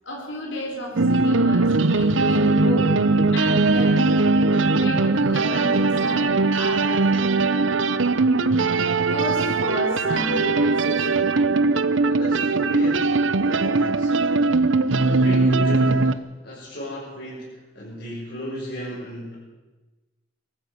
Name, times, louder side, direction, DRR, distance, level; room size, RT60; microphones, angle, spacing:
voice 1, 0.0-2.9 3.3-4.3 4.8-7.1 8.9-11.2, left 2 dB, 75° left, -1 dB, 4.6 m, -32 dB
sound 1, 1.0-16.1, right 3 dB, 85° right, 0.9 m, -20 dB
voice 2, 12.1-14.4 15.0-16.1 16.4-19.4, equal, 55° left, -8 dB, 6.4 m, -35 dB
23.0 x 14.5 x 8.0 m, 1.2 s
head